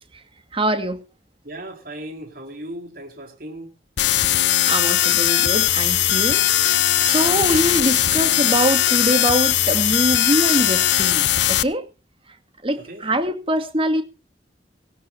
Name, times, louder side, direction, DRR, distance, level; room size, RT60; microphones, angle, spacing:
voice 1, 0.5-1.0 4.4-11.9 12.6-14.0, right 1 dB, 30° right, 2.3 m, -23 dB
voice 2, 1.4-3.7 12.8-13.0, right 1 dB, 50° right, 4.5 m, -36 dB
sound 1, 4.0-11.6, left 13 dB, 75° left, 0.7 m, -19 dB
17.5 x 17.5 x 2.8 m
head